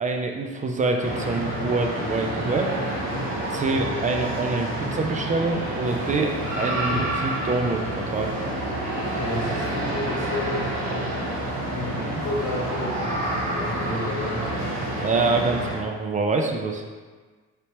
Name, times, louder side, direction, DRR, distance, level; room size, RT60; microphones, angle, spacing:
voice 1, 0.0-2.7 3.5-8.3 14.9-16.8, right 3 dB, 25° right, 3 dB, 0.4 m, -26 dB
sound 1, 1.0-15.8, right 1 dB, 70° right, 1.2 m, -28 dB
voice 2, 9.2-11.0 11.5-13.0 13.5-14.8, left 2 dB, 80° left, -3 dB, 0.9 m, -32 dB
3.3 x 2.8 x 2.9 m, 1.4 s
cardioid pair, 90°, 30 cm